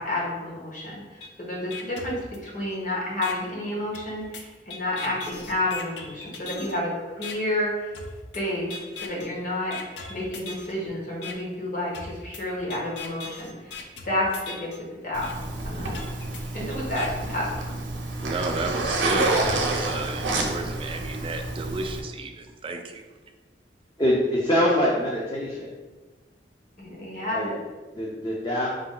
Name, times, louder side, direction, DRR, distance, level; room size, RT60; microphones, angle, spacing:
voice 1, 0.0-7.9 8.3-13.8 14.0-15.3 15.6-16.0 16.5-17.8 26.8-27.5, left 1 dB, 50° left, -5 dB, 1.2 m, -30 dB
sound 1, 1.2-1.3 1.7-2.7 3.2-3.3 3.9-6.8 7.2-7.3 7.9-8.4 8.7-9.3 9.7-10.7 11.2-11.3 11.9-14.8 15.2-15.3 15.9-17.1, left 4 dB, 75° left, 0.5 m, -39 dB
Zipper (clothing), 15.1-22.0, right 2 dB, 85° right, 0.7 m, -29 dB
voice 2, 18.2-23.0, right 3 dB, 30° right, 5 dB, 0.4 m, -32 dB
voice 3, 24.0-25.7 27.3-27.5 27.9-28.7, equal, 25° left, -5 dB, 0.5 m, -24 dB
4.8 x 2.2 x 3.7 m, 1.2 s
head